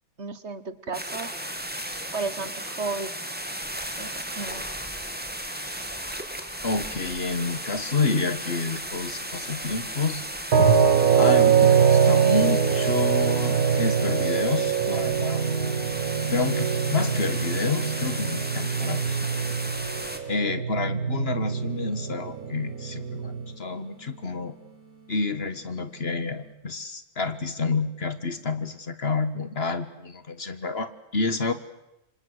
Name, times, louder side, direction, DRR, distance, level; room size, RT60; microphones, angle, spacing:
voice 1, 0.2-1.3 2.1-3.1 4.0-4.6, right 4 dB, 50° right, 14 dB, 1.5 m, -33 dB
sound 1, 0.9-20.2, right 1 dB, 5° right, 2.5 m, -35 dB
voice 2, 6.6-10.2 11.2-15.4 16.3-19.2 19.8-19.9 20.3-24.5 25.1-31.5, left 3 dB, 45° left, 12 dB, 1.6 m, -29 dB
sound 2, 10.5-23.5, right 7 dB, 85° right, 1.8 m, -23 dB
sound 3, 21.5-26.5, right 5 dB, 70° right, 6.3 m, -51 dB
27.0 x 24.5 x 8.0 m, 0.90 s
omnidirectional pair, 1.5 m